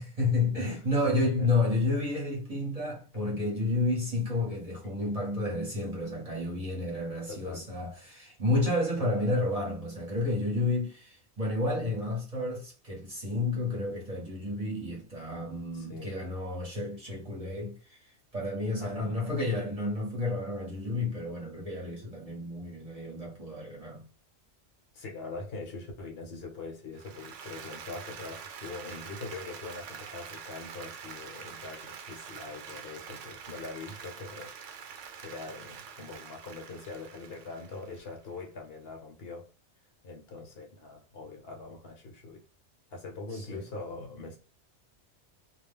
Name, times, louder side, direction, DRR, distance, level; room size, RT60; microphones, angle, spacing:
voice 1, 0.0-24.0 43.3-43.6, left 2 dB, 35° right, 0.9 m, -31 dB
voice 2, 0.5-1.3 7.3-7.7 9.0-9.5 15.7-16.2 18.8-19.1 24.9-34.5 34.8-39.5 40.0-42.4 42.9-44.4, left 3 dB, 60° left, 0.9 m, -42 dB
Applause, 27.0-38.3, right 7 dB, 85° right, 0.9 m, -45 dB
2.3 x 2.1 x 3.4 m
omnidirectional pair, 1.2 m